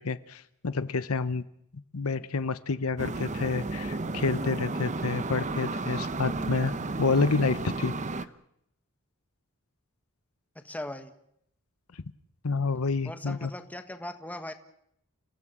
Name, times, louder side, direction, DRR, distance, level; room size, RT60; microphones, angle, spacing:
voice 1, 0.0-1.4 1.9-6.7 7.0-7.9 12.4-13.5, left 4 dB, 80° left, 14 dB, 0.9 m, -28 dB
sound 1, 3.0-8.3, right 2 dB, 35° right, 0.9 m, -33 dB
voice 2, 10.5-11.1 13.0-14.5, left 1 dB, 5° left, 7 dB, 1.5 m, -39 dB
29.5 x 16.0 x 7.4 m, 0.75 s
head